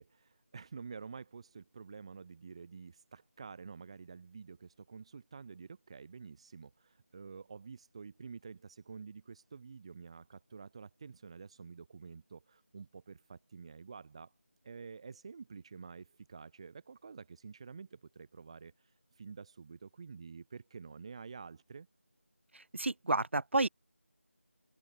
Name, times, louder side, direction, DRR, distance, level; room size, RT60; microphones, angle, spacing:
voice 1, 0.0-14.3 14.6-21.9, right 5 dB, 25° right, 3.5 m, -49 dB
voice 2, 22.5-23.7, right 2 dB, 55° right, 0.5 m, -31 dB
open air
figure-of-eight pair, 170°, 8 cm